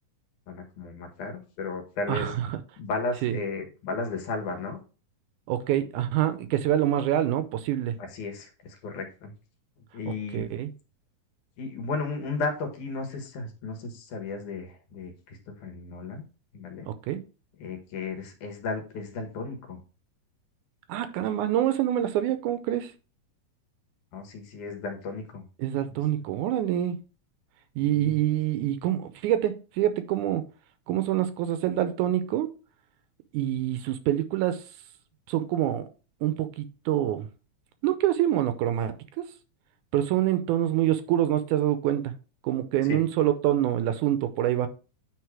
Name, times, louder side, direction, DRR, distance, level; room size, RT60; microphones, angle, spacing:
voice 1, 0.5-2.3 2.8-4.8 8.0-9.3 9.9-10.5 11.6-16.2 16.5-16.9 17.6-19.8 24.1-25.4 27.8-28.2 42.8-43.0, left 3 dB, 70° left, 2.9 m, -34 dB
voice 2, 2.1-2.6 3.2-3.4 5.5-8.0 10.1-10.7 16.9-17.2 20.9-22.9 25.6-27.0 27.8-30.4 30.9-32.5 33.3-34.6 35.3-35.9 36.2-37.3 37.8-39.3 39.9-42.1 42.4-44.7, right 12 dB, 80° right, 2.0 m, -26 dB
9.4 x 3.8 x 4.7 m
omnidirectional pair, 3.7 m